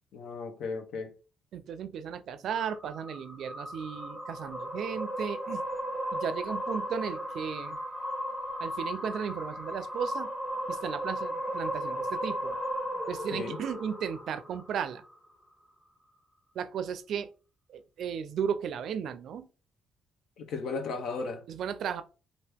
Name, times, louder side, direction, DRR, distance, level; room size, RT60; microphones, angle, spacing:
voice 1, 0.1-1.1 13.3-13.6 20.4-21.4, left 4 dB, 75° left, 0.8 m, -35 dB
voice 2, 1.5-5.6 6.1-7.8 8.6-10.3 10.7-12.6 13.1-15.0 16.6-17.3 17.7-19.5 21.5-22.0, right 8 dB, 70° right, 0.4 m, -35 dB
sound 1, 2.5-15.0, equal, 5° left, 1.0 m, -36 dB
2.9 x 2.6 x 3.4 m
cardioid pair, 90°, 0 cm